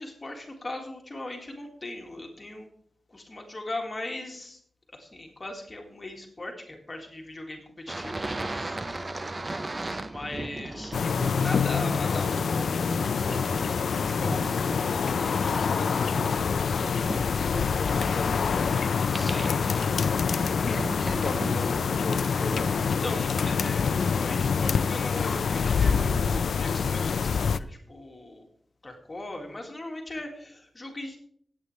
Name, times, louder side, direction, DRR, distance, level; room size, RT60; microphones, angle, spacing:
voice 1, 0.0-2.7 3.1-4.6 4.9-8.2 8.5-8.9 10.0-13.6 13.9-15.7 19.1-20.3 23.0-28.5 28.8-31.2, left 2 dB, 25° left, 2 dB, 1.9 m, -39 dB
sound 1, 7.9-26.4, right 2 dB, 25° right, 0.6 m, -38 dB
sound 2, 10.9-27.6, left 6 dB, 80° left, 0.4 m, -26 dB
voice 2, 15.9-19.0 20.6-22.8, left 3 dB, 55° left, 7 dB, 1.1 m, -36 dB
17.5 x 8.4 x 3.2 m, 0.63 s
wide cardioid pair, 150°, 0 cm